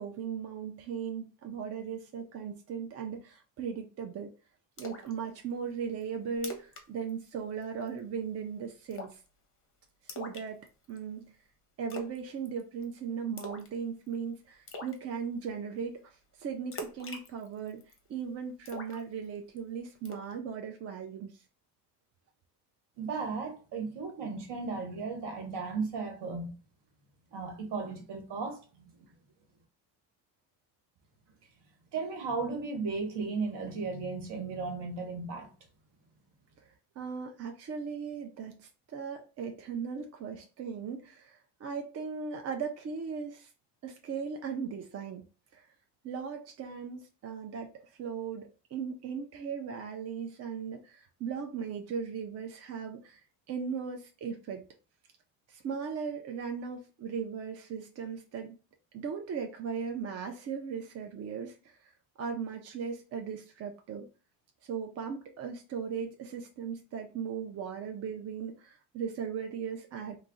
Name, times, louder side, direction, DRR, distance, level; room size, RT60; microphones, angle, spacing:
voice 1, 0.0-4.3 4.8-9.2 10.0-10.6 10.9-11.4 11.8-21.4 37.0-43.5 43.8-45.3 45.5-45.7 46.0-47.7 48.0-54.6 55.5-58.5 58.9-61.9 62.2-64.1 64.6-70.2, right 6 dB, 35° right, 0.4 m, -38 dB
Splash splatter, 4.8-5.1 5.5-5.6 6.0-6.1 6.4-6.8 7.1-7.3 7.6-8.0 8.9-9.3 10.1-11.0 11.9-12.2 12.5-12.8 13.4-13.8 14.1-14.2 14.7-15.0 16.7-18.0 18.7-19.6 20.1-20.3, left 1 dB, 30° left, 0.7 m, -43 dB
voice 2, 23.0-26.5 27.3-29.1 31.9-35.5, right 4 dB, 60° right, 1.1 m, -35 dB
2.3 x 2.0 x 3.7 m
supercardioid pair, 75°, 47 cm